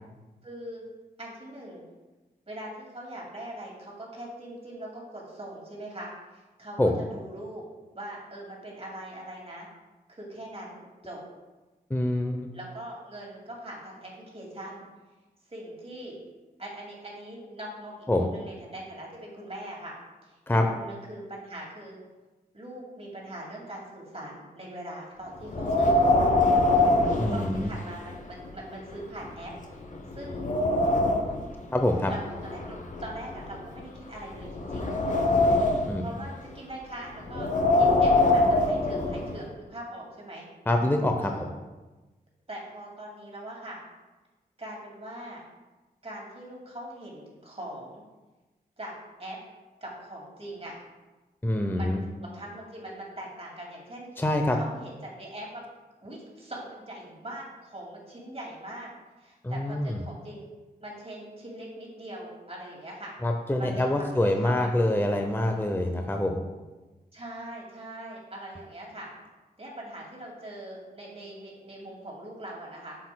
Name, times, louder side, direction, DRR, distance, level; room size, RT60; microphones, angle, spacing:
voice 1, 0.4-0.8 1.2-1.8 2.5-7.6 7.9-9.7 10.1-11.2 12.5-14.8 15.5-16.2 16.6-19.9 20.2-22.0 22.5-26.3 27.3-29.5 30.1-30.4 32.0-34.9 36.0-37.5 37.7-40.5 41.2-41.5 42.5-43.8 44.6-45.4 46.0-48.0 48.8-48.9 49.2-49.4 49.8-50.7 51.7-54.2 54.5-55.7 56.0-58.9 59.2-60.5 60.8-63.1 63.6-64.7 67.1-69.1 69.6-73.0, right 1 dB, 35° right, -3 dB, 2.2 m, -41 dB
voice 2, 11.9-12.5 18.1-18.3 20.5-20.7 27.2-27.7 31.7-32.1 35.9-36.1 40.7-41.5 51.4-52.0 54.2-54.6 59.4-60.0 63.2-66.4, left 1 dB, 10° left, 4 dB, 0.6 m, -25 dB
Wind, 25.5-28.1 28.5-28.6 29.2-29.3 29.8-31.4 32.3-33.8 34.4-36.0 37.3-39.4, left 2 dB, 45° left, 0.8 m, -23 dB
8.0 x 6.4 x 2.2 m, 1.2 s
supercardioid pair, 40°, 17 cm